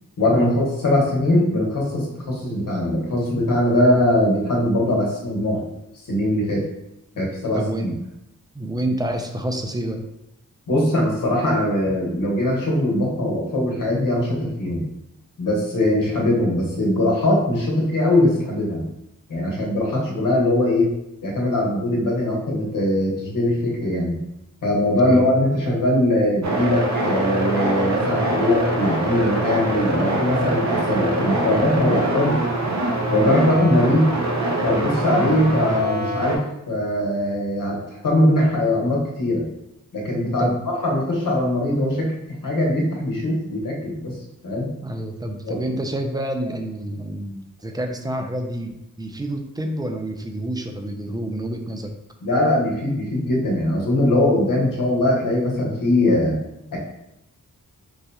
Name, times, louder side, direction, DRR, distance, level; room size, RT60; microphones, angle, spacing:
voice 1, 0.2-5.6 6.0-6.7 7.2-7.9 10.7-14.8 15.4-18.8 19.3-20.9 21.2-24.2 24.6-32.4 33.1-34.1 34.6-36.4 36.7-39.4 39.9-40.5 40.8-42.1 42.4-44.2 44.4-44.7 45.4-45.6 52.2-56.4 56.7-56.8, left 1 dB, 80° left, -2 dB, 1.1 m, -21 dB
voice 2, 7.5-7.9 8.5-10.1 20.1-20.3 24.9-25.3 40.4-40.6 44.8-51.9, right 1 dB, 15° right, 4 dB, 0.3 m, -28 dB
sound 1, 26.4-36.4, right 1 dB, 55° right, 0.6 m, -23 dB
4.7 x 2.7 x 2.2 m, 0.86 s
wide cardioid pair, 135°, 33 cm